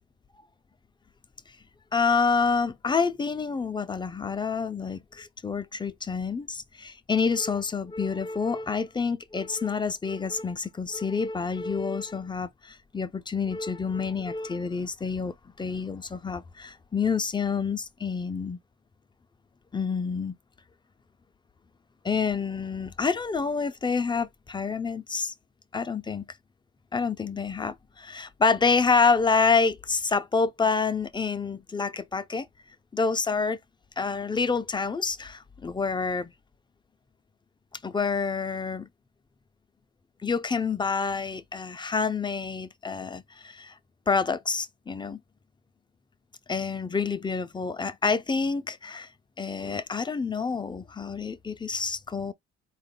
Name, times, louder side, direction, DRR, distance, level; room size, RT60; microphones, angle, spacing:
voice 1, 1.9-18.6 19.7-20.3 22.0-25.3 25.7-26.3 26.9-32.5 32.9-33.6 34.0-36.3 37.8-38.9 40.2-43.7 44.1-45.2 46.5-49.1 49.4-52.3, left 5 dB, 15° left, 0.4 m, -28 dB
4.1 x 2.2 x 3.7 m
cardioid pair, 90°, 30 cm